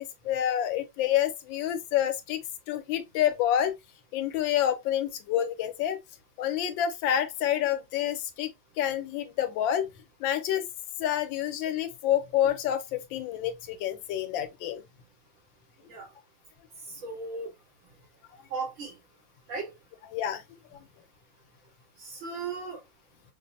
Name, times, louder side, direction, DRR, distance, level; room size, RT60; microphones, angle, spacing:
voice 1, 0.0-3.7 4.1-6.0 6.4-8.5 8.8-9.9 10.2-10.7 11.0-14.8 20.1-20.4 20.7-20.8, left 10 dB, 90° left, 1.4 m, -28 dB
voice 2, 16.9-17.5 18.5-18.9 19.5-19.7 22.0-22.8, right 4 dB, 80° right, 2.9 m, -36 dB
5.7 x 2.0 x 2.6 m
omnidirectional pair, 2.0 m